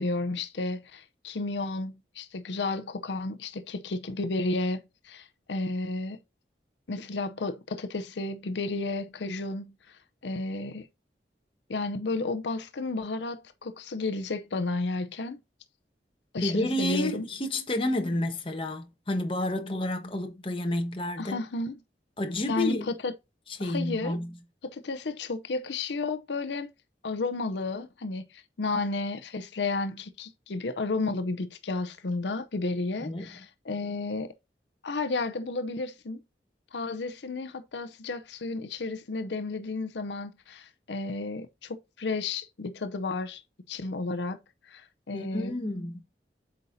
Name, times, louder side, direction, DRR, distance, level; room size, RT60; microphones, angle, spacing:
voice 1, 0.0-6.2 6.9-10.9 11.7-15.4 16.3-17.3 21.2-21.8 22.5-23.1 23.6-24.2 24.6-26.7 27.0-34.3 34.8-36.2 36.7-43.4 43.7-44.4 44.7-45.6, left 3 dB, 85° left, 0.7 m, -32 dB
voice 2, 16.4-21.4 22.2-22.9 23.6-24.4 33.0-33.5 45.1-46.0, left 1 dB, 30° left, 1.1 m, -30 dB
8.1 x 5.3 x 2.7 m
head